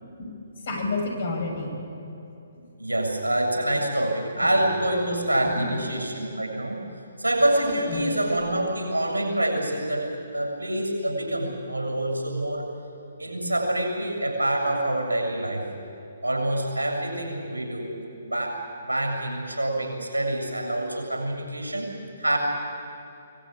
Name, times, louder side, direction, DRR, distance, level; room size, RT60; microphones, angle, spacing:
voice 1, 0.6-1.9 5.5-5.8 7.6-8.1, left 2 dB, 50° left, 3 dB, 6.9 m, -30 dB
voice 2, 2.8-6.8 7.2-12.7 13.2-15.6 16.2-17.9 18.2-22.4, right 1 dB, 85° right, 1 dB, 7.6 m, -26 dB
24.5 x 19.5 x 8.8 m, 2.8 s
figure-of-eight pair, 130°, 0 cm